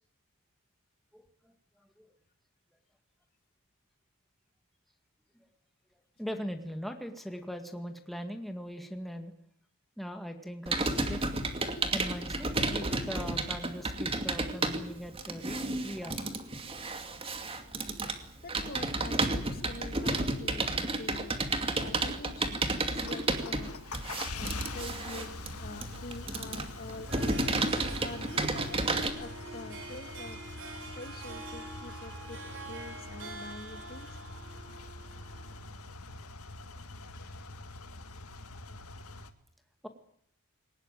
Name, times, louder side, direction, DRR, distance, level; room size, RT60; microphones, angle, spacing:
voice 1, 6.2-9.3 10.0-11.2 11.9-16.2 36.7-36.8, equal, ahead, 5 dB, 1.9 m, -40 dB
Computer keyboard, 10.7-29.1, right 2 dB, 25° right, 2.5 m, -32 dB
voice 2, 18.4-21.4 21.8-23.8 24.4-27.5 28.0-30.4 31.0-32.4 32.7-34.2 37.0-37.5, left 2 dB, 45° left, 8 dB, 2.4 m, -46 dB
sound 1, 22.9-39.3, left 2 dB, 90° left, 1.9 m, -44 dB
Harp, 26.9-35.7, right 2 dB, 60° right, 3.8 m, -45 dB
22.5 x 19.5 x 9.2 m, 0.68 s
head